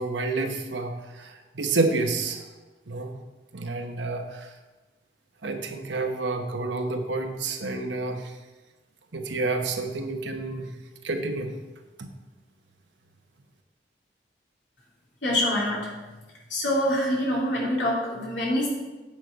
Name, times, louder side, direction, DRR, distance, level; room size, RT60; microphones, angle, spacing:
voice 1, 0.0-2.4 2.9-3.2 3.5-4.5 5.4-8.4 9.1-10.7 11.0-11.5 12.0-12.1, right 3 dB, 75° right, 5 dB, 1.0 m, -29 dB
voice 2, 15.2-15.9 16.5-18.7, left 1 dB, 75° left, -4 dB, 2.8 m, -25 dB
9.2 x 6.1 x 5.1 m, 1.2 s
head